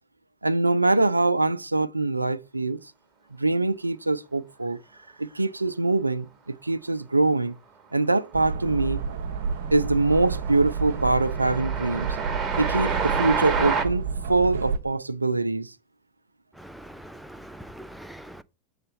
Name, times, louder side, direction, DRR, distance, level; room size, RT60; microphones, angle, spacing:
voice 1, 0.4-2.8 3.4-4.8 5.2-7.6 7.9-9.0 9.7-12.2 12.6-15.7, right 2 dB, 80° right, 0.4 m, -24 dB
Train, 8.2-8.6 8.9-13.9, right 5 dB, 20° right, 1.2 m, -29 dB
sound 1, 8.3-14.8, right 5 dB, 55° right, 0.9 m, -30 dB
voice 2, 16.6-18.4, right 1 dB, ahead, 0.4 m, -43 dB
6.7 x 4.1 x 6.6 m
figure-of-eight pair, 90°, 0 cm